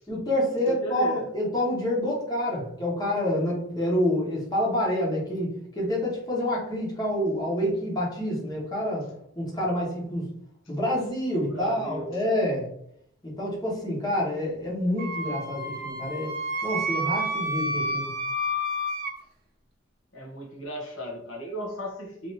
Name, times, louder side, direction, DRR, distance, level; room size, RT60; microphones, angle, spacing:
voice 1, 0.1-9.1 9.4-10.3 10.7-12.7 13.2-16.3 16.6-18.1, left 1 dB, 20° left, -4 dB, 1.2 m, -27 dB
voice 2, 0.7-1.2 11.4-12.2 20.1-22.3, right 1 dB, 80° left, 0 dB, 1.0 m, -36 dB
Wind instrument woodwind instrument, 15.0-19.1, right 1 dB, 50° right, 0.8 m, -30 dB
3.2 x 2.8 x 2.7 m, 0.69 s
head